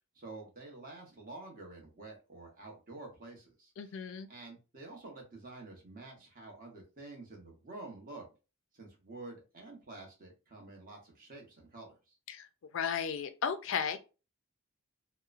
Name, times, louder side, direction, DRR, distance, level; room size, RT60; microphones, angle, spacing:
voice 1, 0.1-4.0 4.3-8.3 8.7-12.2, right 2 dB, 40° right, 0.9 m, -49 dB
voice 2, 3.8-4.3 12.3-12.5 12.7-14.0, left 7 dB, 60° left, 0.3 m, -34 dB
2.8 x 2.0 x 2.4 m
head